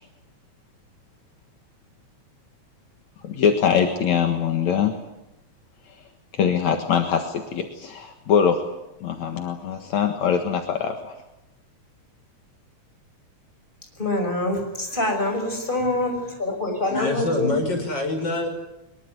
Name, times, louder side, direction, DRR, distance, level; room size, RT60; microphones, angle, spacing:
voice 1, 3.2-4.9 5.9-6.0 6.3-8.6 9.0-11.2, left 7 dB, 70° left, 4 dB, 2.9 m, -23 dB
voice 2, 14.0-17.6, left 1 dB, 15° left, 4 dB, 5.9 m, -25 dB
voice 3, 16.9-18.5, left 2 dB, 35° left, 4 dB, 6.3 m, -25 dB
23.0 x 22.5 x 9.5 m, 0.94 s
omnidirectional pair, 3.4 m